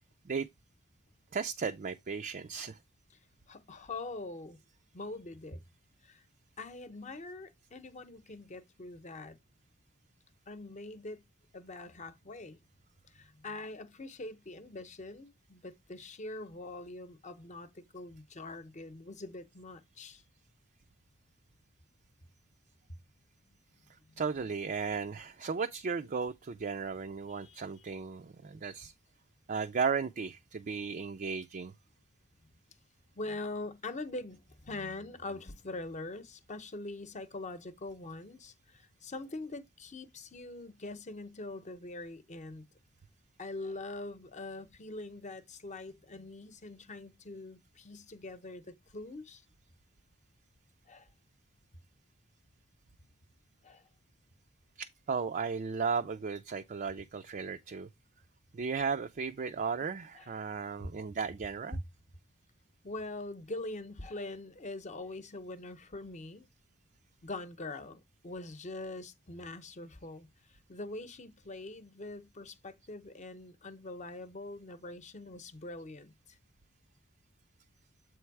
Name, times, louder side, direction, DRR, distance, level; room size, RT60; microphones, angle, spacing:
voice 1, 1.3-2.8 24.2-28.9 29.5-31.7 54.8-57.9 58.5-61.8, right 5 dB, 40° right, 0.4 m, -35 dB
voice 2, 3.5-4.6 4.9-5.6 6.0-6.2 6.6-9.4 10.5-11.2 11.5-12.6 13.1-20.2 22.9-23.0 23.5-23.6 24.0-24.2 27.3-27.6 33.1-42.6 43.4-49.4 50.9-51.1 53.6-53.8 60.1-60.3 60.8-60.9 61.7-61.8 62.8-66.5 67.2-76.4, left 2 dB, 35° left, 0.8 m, -43 dB
7.8 x 3.2 x 4.7 m
head